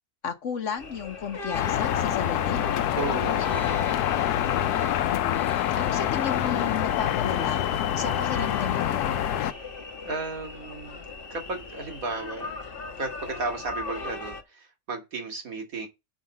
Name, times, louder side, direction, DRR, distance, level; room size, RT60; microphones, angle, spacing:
voice 1, 0.2-2.6 5.0-5.5 5.7-7.6 8.0-9.2, left 6 dB, 55° left, 1.2 m, -33 dB
sound 1, 0.8-14.4, left 3 dB, 40° left, 1.3 m, -38 dB
sound 2, 1.5-9.5, left 11 dB, 85° left, 1.1 m, -26 dB
voice 2, 3.0-4.0 10.0-12.5 13.0-15.9, right 3 dB, 65° right, 2.3 m, -34 dB
6.2 x 5.3 x 5.4 m
omnidirectional pair, 1.6 m